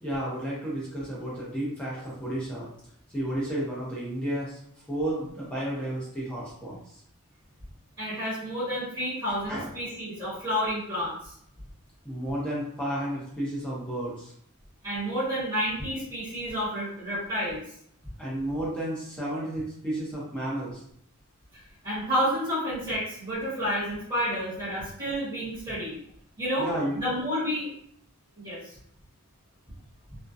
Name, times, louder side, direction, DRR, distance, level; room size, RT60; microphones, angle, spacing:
voice 1, 0.0-2.7 3.1-4.6 4.9-7.0 9.5-9.7 12.0-14.3 18.2-20.8 26.6-27.0, right 1 dB, 5° left, -7 dB, 0.6 m, -32 dB
voice 2, 8.0-11.3 14.8-17.6 21.5-25.9 26.4-26.7 26.9-27.7 28.4-28.7, equal, 20° right, -12 dB, 1.0 m, -30 dB
2.6 x 2.1 x 2.3 m, 0.68 s
head